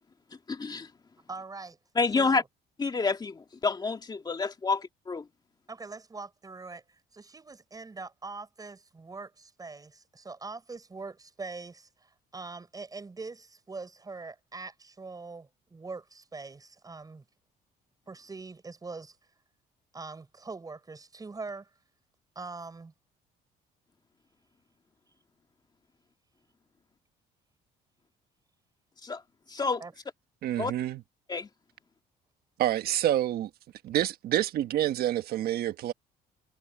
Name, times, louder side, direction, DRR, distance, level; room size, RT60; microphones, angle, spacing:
voice 1, 0.5-0.9 2.0-2.4 2.8-5.3 29.0-29.2 29.5-29.8 30.6-30.7 31.3-31.5, left 4 dB, 25° left, 2.2 m, -28 dB
voice 2, 1.2-1.8 2.1-2.5 5.7-17.2 18.1-19.2 19.9-21.7 22.3-22.9 29.8-29.9, right 3 dB, 20° right, 6.1 m, -43 dB
voice 3, 30.4-31.0 32.6-33.5 33.8-35.9, right 12 dB, 65° right, 1.3 m, -27 dB
cardioid pair, 110°, 17 cm